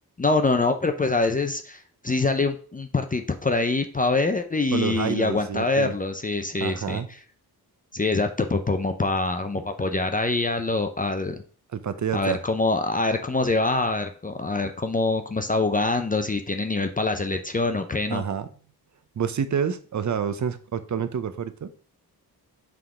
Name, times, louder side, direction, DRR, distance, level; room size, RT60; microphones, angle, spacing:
voice 1, 0.2-7.0 7.9-11.4 12.1-18.2, left 3 dB, 20° left, 6 dB, 0.5 m, -25 dB
voice 2, 4.7-5.9 6.6-7.1 11.7-12.4 18.1-18.5 19.2-21.7, right 7 dB, 50° right, 12 dB, 0.7 m, -28 dB
5.6 x 3.8 x 4.8 m, 0.42 s
cardioid pair, 90°, 38 cm